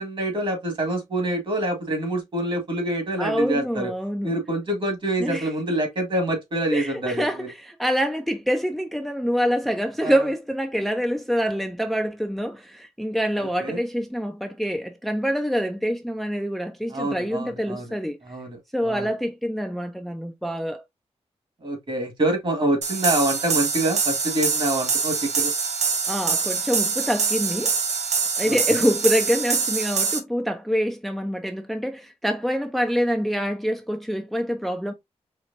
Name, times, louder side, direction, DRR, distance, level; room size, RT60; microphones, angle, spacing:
voice 1, 0.0-3.9 4.2-7.5 10.0-10.2 13.6-13.8 16.9-17.8 18.3-18.6 18.8-19.1 21.6-25.5 28.5-28.9, right 1 dB, 50° right, 1.8 m, -26 dB
voice 2, 3.2-4.3 5.2-5.5 6.7-18.2 18.7-20.8 26.1-27.7 28.4-34.9, equal, ahead, 0.5 m, -26 dB
sound 1, 22.8-30.2, right 5 dB, 85° right, 0.8 m, -25 dB
4.5 x 3.1 x 2.7 m
wide cardioid pair, 105°, 11 cm